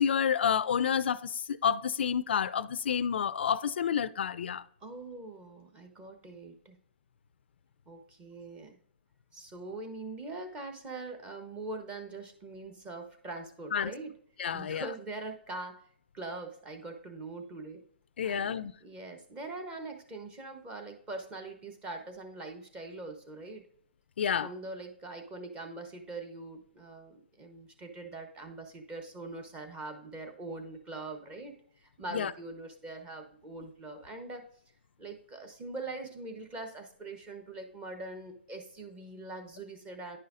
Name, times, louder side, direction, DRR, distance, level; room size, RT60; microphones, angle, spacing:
voice 1, 0.0-4.6 13.7-13.9 14.4-14.9 18.2-18.7 24.2-24.5 32.1-32.3, left 8 dB, 70° left, 0.3 m, -29 dB
voice 2, 4.8-6.8 7.9-8.8 9.3-14.1 14.5-15.8 16.1-17.8 18.2-23.7 24.4-34.5 35.0-40.2, right 2 dB, 20° right, 1.0 m, -43 dB
9.8 x 5.5 x 2.5 m
hypercardioid pair, 145°, 6 cm